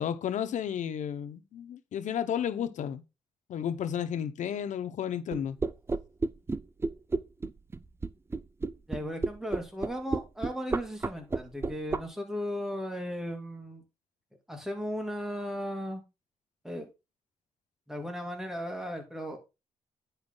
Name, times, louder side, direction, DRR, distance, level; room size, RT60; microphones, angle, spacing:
voice 1, 0.0-3.0 3.5-5.6, left 9 dB, 75° left, 0.9 m, -32 dB
sound 1, 5.3-12.0, right 3 dB, 20° right, 0.4 m, -30 dB
voice 2, 8.9-13.8 14.5-16.0 16.6-16.9 17.9-19.4, equal, 5° right, 2.8 m, -36 dB
9.8 x 5.7 x 3.8 m
cardioid pair, 105°, 12 cm